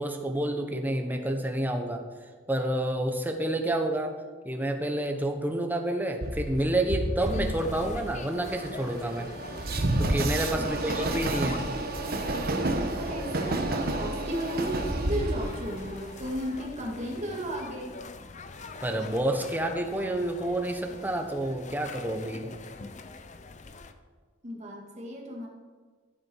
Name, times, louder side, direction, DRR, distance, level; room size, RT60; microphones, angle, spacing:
voice 1, 0.0-2.0 2.5-4.1 4.4-9.3 10.0-11.7 18.8-22.5, right 1 dB, 10° right, 4 dB, 1.1 m, -29 dB
Train, 6.2-16.6, right 2 dB, 50° right, 1.2 m, -30 dB
sound 1, 7.2-23.9, left 3 dB, 40° left, 0.7 m, -44 dB
voice 2, 10.5-11.6 13.0-18.0 24.4-25.5, equal, 35° right, -1 dB, 2.3 m, -35 dB
15.0 x 8.5 x 4.7 m, 1.5 s
head